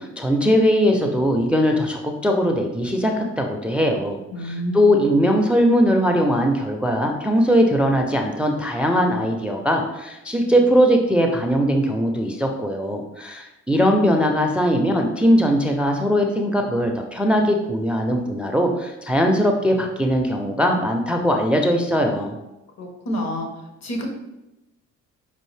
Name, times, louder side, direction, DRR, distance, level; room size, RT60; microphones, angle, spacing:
voice 1, 0.0-22.4, equal, 5° right, 2 dB, 0.4 m, -20 dB
voice 2, 4.3-4.9 22.8-23.5 23.8-24.1, equal, 60° left, 3 dB, 1.1 m, -28 dB
5.4 x 2.5 x 3.2 m, 0.97 s
cardioid pair, 90°, 30 cm